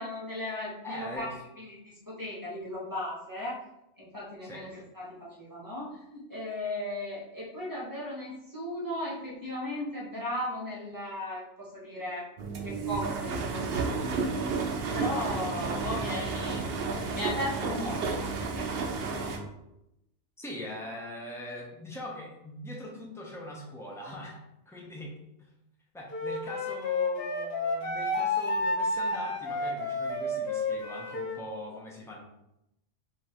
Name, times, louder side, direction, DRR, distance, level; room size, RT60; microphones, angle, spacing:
voice 1, 0.0-3.6 4.0-12.3 12.6-14.2 14.9-16.8 17.0-18.3, left 1 dB, 20° right, -6 dB, 1.2 m, -36 dB
voice 2, 0.8-1.3 4.4-4.6 20.4-24.4 24.7-25.2 25.9-32.2, left 1 dB, 5° left, -3 dB, 0.8 m, -42 dB
sound 1, 12.4-19.4, right 4 dB, 65° right, 0.8 m, -32 dB
Wind instrument woodwind instrument, 26.1-31.4, left 2 dB, 65° left, 0.9 m, -30 dB
5.3 x 2.8 x 3.0 m, 0.85 s
omnidirectional pair, 1.2 m